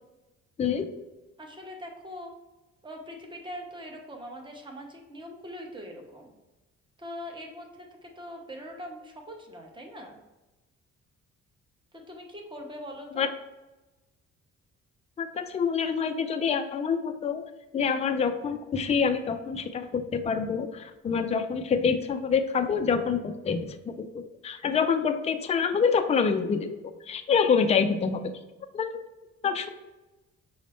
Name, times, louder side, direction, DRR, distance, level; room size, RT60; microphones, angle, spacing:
voice 1, 1.4-2.3 2.8-6.3 7.0-10.2 11.9-13.2, equal, 15° right, 1 dB, 0.9 m, -42 dB
voice 2, 15.2-17.4 17.7-26.7 27.1-28.2 28.7-29.0 29.4-29.7, left 6 dB, 20° left, 7 dB, 0.4 m, -26 dB
6.0 x 2.1 x 4.2 m, 1.1 s
cardioid pair, 90°, 30 cm